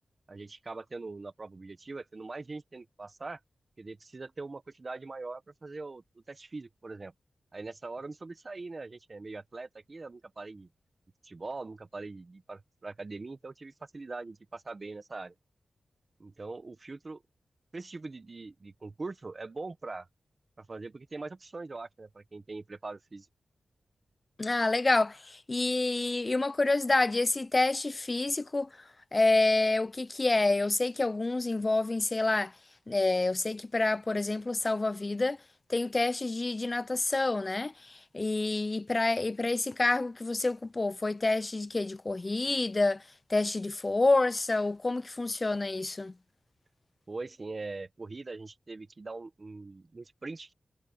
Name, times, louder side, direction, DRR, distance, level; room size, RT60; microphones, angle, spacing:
voice 1, 0.3-3.4 3.8-7.1 7.5-10.7 11.2-15.3 16.2-17.2 17.7-20.1 20.6-23.3 47.1-50.5, right 3 dB, 30° right, 0.8 m, -42 dB
voice 2, 24.4-28.7 29.1-32.5 32.9-35.4 35.7-37.7 38.1-43.0 43.3-46.1, left 2 dB, 25° left, 0.3 m, -28 dB
wide cardioid pair, 150°, 0 cm